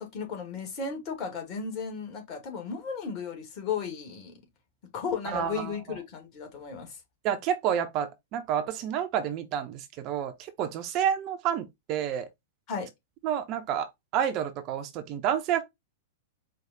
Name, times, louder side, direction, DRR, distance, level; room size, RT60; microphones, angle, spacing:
voice 1, 0.0-4.3 4.9-7.0 12.7-12.9, left 6 dB, 35° left, 1.8 m, -35 dB
voice 2, 5.2-6.0 7.2-12.3 13.2-15.6, right 9 dB, 35° right, 0.6 m, -29 dB
4.8 x 2.4 x 3.9 m
figure-of-eight pair, 100°, 0 cm